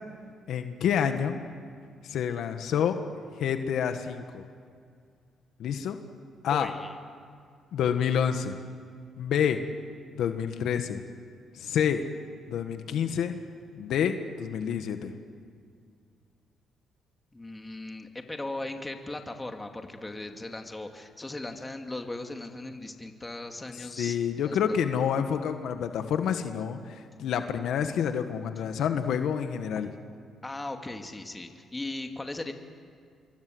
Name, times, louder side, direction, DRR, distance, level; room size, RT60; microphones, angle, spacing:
voice 1, 0.5-1.4 2.0-3.0 3.4-4.4 5.6-6.0 6.4-6.7 7.7-8.6 9.2-9.6 10.2-11.0 11.5-12.0 12.5-13.4 13.8-15.1 23.7-29.9, left 8 dB, 75° left, 8 dB, 1.5 m, -28 dB
voice 2, 6.5-7.0 17.3-24.2 24.4-24.6 30.4-32.5, left 2 dB, 15° left, 5 dB, 2.5 m, -38 dB
26.5 x 23.0 x 7.9 m, 2.2 s
cardioid pair, 90°, 0 cm